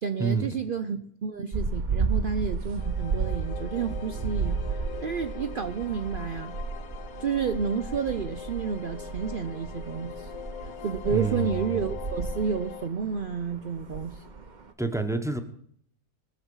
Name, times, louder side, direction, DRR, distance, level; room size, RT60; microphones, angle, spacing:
voice 1, 0.0-4.6 5.0-6.5 7.2-10.3 10.6-14.2, right 6 dB, 80° right, 10 dB, 0.4 m, -30 dB
sound 1, 1.5-14.7, right 5 dB, 35° right, 0.9 m, -33 dB
sound 2, 2.8-12.9, left 8 dB, 65° left, 1.2 m, -42 dB
voice 2, 11.1-11.8 14.8-15.4, right 3 dB, ahead, 6 dB, 0.9 m, -28 dB
20.5 x 7.2 x 5.5 m, 0.66 s
omnidirectional pair, 1.7 m